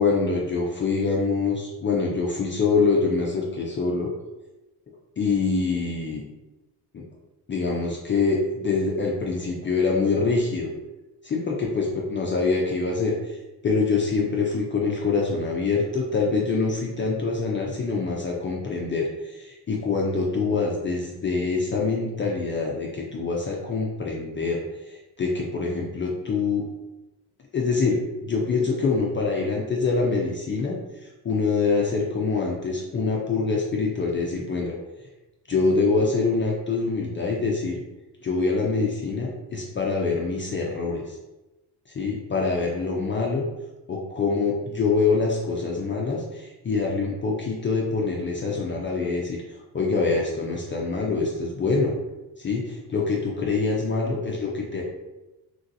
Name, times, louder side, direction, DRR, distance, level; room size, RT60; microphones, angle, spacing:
voice 1, 0.0-4.1 5.2-6.2 6.9-7.1 7.5-10.7 11.2-13.4 13.6-26.7 27.5-34.8 35.5-37.8 38.2-41.2 41.9-43.4 43.9-49.4 49.7-51.9 52.4-54.8, left 4 dB, 30° left, -2 dB, 0.4 m, -25 dB
3.1 x 2.5 x 2.6 m, 1.0 s
cardioid pair, 110°, 41 cm